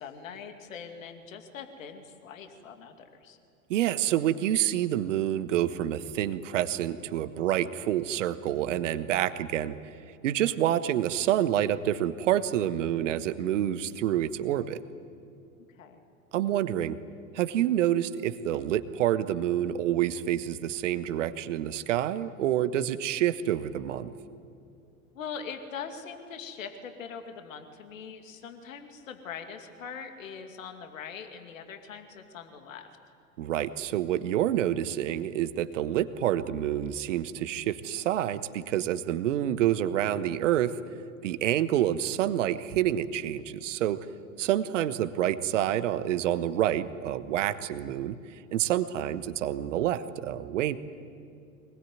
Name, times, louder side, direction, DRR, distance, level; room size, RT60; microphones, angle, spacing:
voice 1, 0.0-3.4 15.8-16.0 25.1-32.9 44.4-44.5, left 6 dB, 60° left, 6 dB, 2.5 m, -42 dB
voice 2, 3.7-9.8 10.2-14.8 16.3-17.0 17.3-24.1 33.4-40.8 41.2-44.0 44.4-48.2 48.5-50.8, right 11 dB, 55° right, 13 dB, 1.3 m, -28 dB
24.0 x 20.5 x 9.5 m, 2.5 s
figure-of-eight pair, 90°, 44 cm